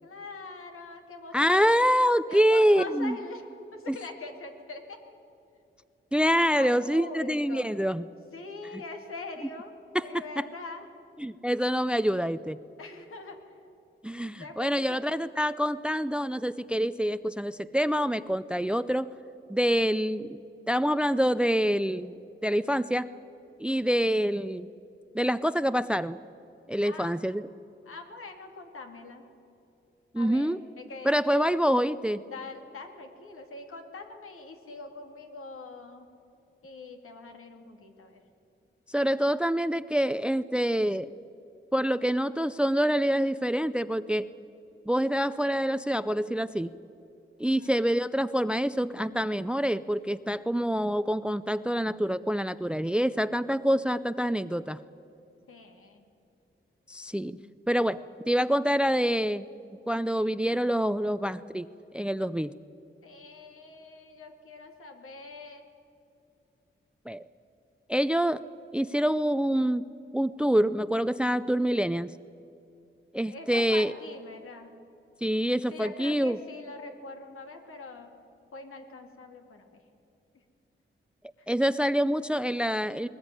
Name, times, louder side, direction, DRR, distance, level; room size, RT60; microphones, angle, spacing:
voice 1, 0.0-1.8 2.3-3.4 3.7-5.2 6.5-7.7 8.3-9.7 10.0-10.9 12.8-13.6 14.4-15.0 26.8-27.2 27.8-29.2 30.2-31.5 32.3-36.1 36.6-38.2 47.4-47.7 55.5-56.1 63.0-65.6 73.3-74.7 75.7-78.1 78.5-79.8 81.4-81.5, left 3 dB, 85° left, 4 dB, 2.5 m, -43 dB
voice 2, 1.3-3.1 3.9-4.0 6.1-8.0 10.1-10.4 11.2-12.6 14.0-19.1 19.5-22.2 22.4-23.1 23.6-24.7 25.1-26.2 26.7-27.5 30.1-30.6 31.0-32.2 38.9-41.1 41.7-44.3 44.9-46.7 47.4-54.8 56.9-57.4 57.7-59.5 59.9-61.7 61.9-62.5 67.1-67.2 67.9-68.5 68.7-69.8 70.1-72.1 73.1-73.9 75.2-76.4 81.5-83.1, equal, 5° right, 15 dB, 0.5 m, -26 dB
20.5 x 20.0 x 9.8 m, 2.7 s
wide cardioid pair, 90°, 21 cm